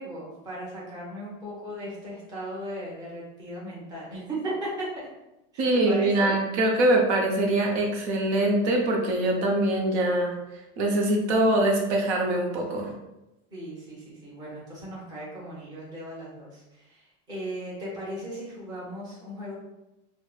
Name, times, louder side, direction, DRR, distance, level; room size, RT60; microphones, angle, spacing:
voice 1, 0.0-5.1 5.5-6.3 13.5-19.5, right 1 dB, 10° right, -6 dB, 0.6 m, -37 dB
voice 2, 5.6-10.4 10.8-12.9, right 1 dB, 70° right, 0 dB, 0.7 m, -23 dB
3.0 x 2.1 x 2.3 m, 0.94 s
supercardioid pair, 155°, 34 cm